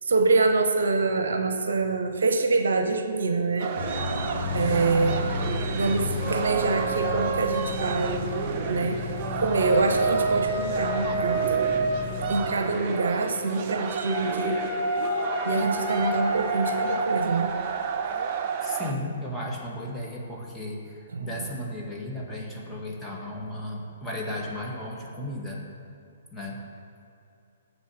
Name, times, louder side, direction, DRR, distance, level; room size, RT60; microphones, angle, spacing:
voice 1, 0.0-3.7 4.5-5.3 5.7-8.3 8.7-9.0 9.4-11.9 12.3-14.6 15.4-17.5 21.1-21.4, right 3 dB, 70° right, 6 dB, 0.8 m, -25 dB
sound 1, 3.6-18.9, right 6 dB, 40° right, 0.7 m, -32 dB
sound 2, 3.8-12.5, left 2 dB, 90° left, 1.7 m, -33 dB
sound 3, 6.2-7.7 9.3-12.2 14.0-17.0, right 2 dB, 25° left, 2.3 m, -29 dB
voice 2, 18.6-25.6 26.3-26.6, left 1 dB, 5° left, -4 dB, 1.7 m, -35 dB
7.2 x 7.1 x 7.1 m, 2.6 s
figure-of-eight pair, 125°, 0 cm